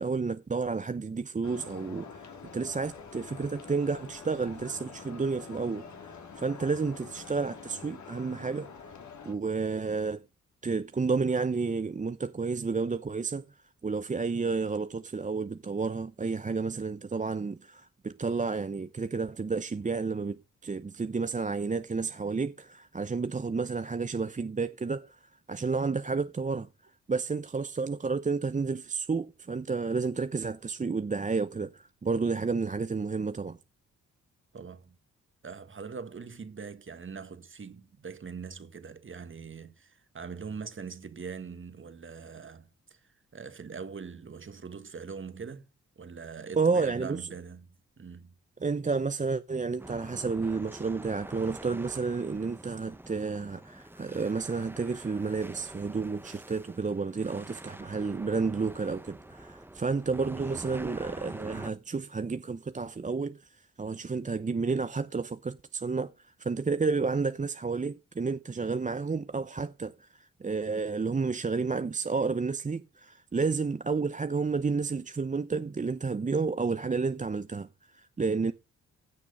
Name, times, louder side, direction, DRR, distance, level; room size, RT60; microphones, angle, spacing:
voice 1, 0.0-8.7 9.2-10.2 10.6-13.4 13.8-25.2 25.5-26.7 27.1-33.6 46.6-47.3 48.6-78.5, right 4 dB, 25° right, 0.7 m, -31 dB
sound 1, 1.4-9.3, left 5 dB, 65° left, 3.1 m, -46 dB
voice 2, 34.5-35.0 35.4-45.7 46.0-48.4, right 5 dB, 40° right, 1.7 m, -42 dB
sound 2, 49.8-61.7, right 1 dB, 5° right, 1.1 m, -45 dB
16.0 x 6.0 x 5.5 m
supercardioid pair, 60°, 31 cm